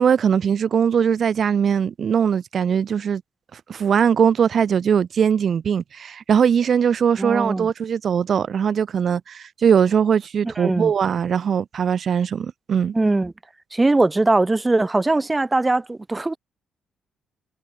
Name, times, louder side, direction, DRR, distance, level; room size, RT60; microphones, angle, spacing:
voice 1, 0.0-3.2 3.7-12.9, right 7 dB, 55° right, 0.4 m, -20 dB
voice 2, 7.2-7.7 10.4-10.9 12.9-13.3 13.7-16.4, right 2 dB, 15° right, 1.2 m, -20 dB
cardioid pair, 90°, 0 cm